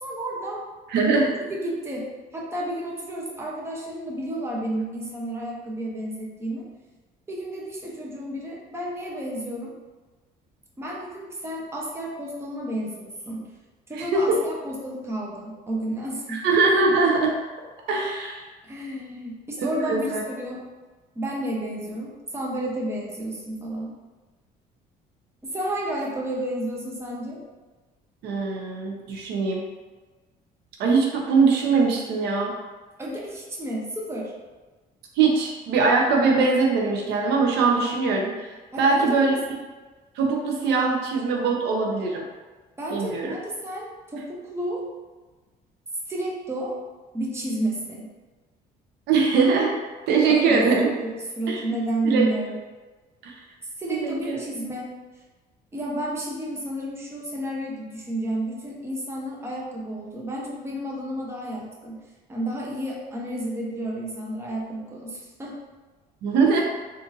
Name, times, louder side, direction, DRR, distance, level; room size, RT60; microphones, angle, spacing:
voice 1, 0.0-0.6 1.5-6.6 7.3-9.7 10.8-13.4 13.9-16.4 18.7-20.6 21.2-23.9 25.4-27.4 33.0-34.3 38.7-39.6 42.8-44.8 46.1-46.7 47.1-48.1 50.3-52.6 53.8-54.9 55.7-62.0 62.3-65.5, right 1 dB, 15° right, -3 dB, 0.7 m, -31 dB
voice 2, 0.9-1.3 14.0-14.4 16.3-17.3 17.9-18.4 19.6-20.2 28.2-29.6 30.8-32.5 35.2-38.5 38.8-39.3 40.2-42.2 42.9-43.3 49.1-49.7 50.1-50.9 51.5-51.6 52.0-52.3 53.2-53.3 53.9-54.4 66.2-66.6, right 4 dB, 80° right, 0 dB, 0.6 m, -22 dB
3.7 x 2.5 x 2.6 m, 1.3 s
cardioid pair, 110°, 17 cm